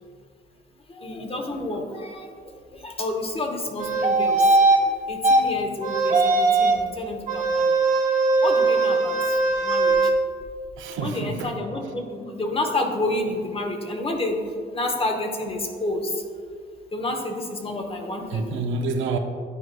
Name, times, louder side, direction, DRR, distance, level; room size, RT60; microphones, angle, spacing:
voice 1, 0.9-2.3 2.7-4.6 4.8-7.7 8.4-10.1 11.0-14.4 14.7-16.2 16.9-18.6, left 2 dB, 30° left, 3 dB, 0.9 m, -29 dB
sound 1, 3.8-4.8 5.2-5.4 5.8-6.8 7.3-10.1, right 3 dB, 40° right, 0.8 m, -20 dB
voice 2, 10.8-11.5 18.3-19.2, right 3 dB, 80° right, 5 dB, 0.6 m, -28 dB
9.9 x 4.6 x 2.2 m, 2.2 s
cardioid pair, 90°, 20 cm